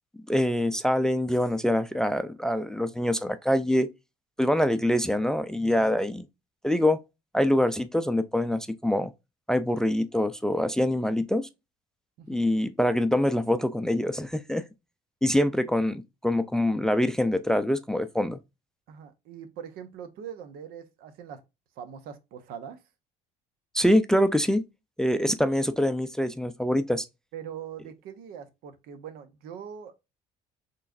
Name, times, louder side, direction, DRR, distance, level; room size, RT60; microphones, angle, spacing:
voice 1, 0.3-3.9 4.4-6.2 6.6-7.0 7.3-9.1 9.5-11.5 12.3-14.6 15.2-18.4 23.7-24.6 25.0-27.0, left 1 dB, 5° left, 0.4 m, -25 dB
voice 2, 18.9-21.4 21.8-22.8 27.3-30.0, right 8 dB, 70° right, 0.7 m, -42 dB
4.6 x 3.1 x 2.5 m
supercardioid pair, 75°, 16 cm